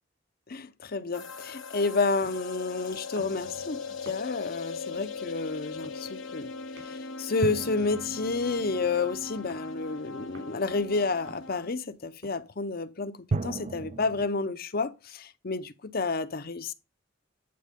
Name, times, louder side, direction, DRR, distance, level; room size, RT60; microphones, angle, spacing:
voice 1, 0.5-6.5 6.8-16.7, left 3 dB, 50° left, 0.8 m, -30 dB
sound 1, 1.1-11.7, left 4 dB, 75° left, 1.0 m, -40 dB
sound 2, 2.2-12.5, right 1 dB, 70° right, 3.3 m, -56 dB
sound 3, 3.2-4.6 7.4-10.0 13.3-14.3, right 3 dB, 35° right, 0.4 m, -37 dB
9.4 x 4.8 x 5.1 m
head